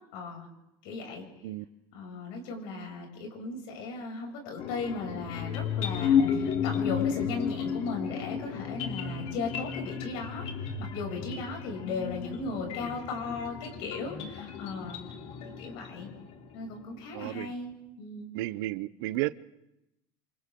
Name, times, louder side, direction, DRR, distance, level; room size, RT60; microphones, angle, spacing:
voice 1, 0.1-0.5 0.8-1.3 1.9-10.5 10.9-15.0 15.6-16.1 16.5-18.3, left 4 dB, 80° left, 1 dB, 6.9 m, -37 dB
sound 1, 4.6-16.7, left 7 dB, 60° left, 3.1 m, -33 dB
voice 2, 17.1-17.5 18.3-19.4, right 17 dB, 85° right, 17 dB, 0.7 m, -33 dB
27.5 x 26.5 x 3.7 m, 0.86 s
supercardioid pair, 120°, 12 cm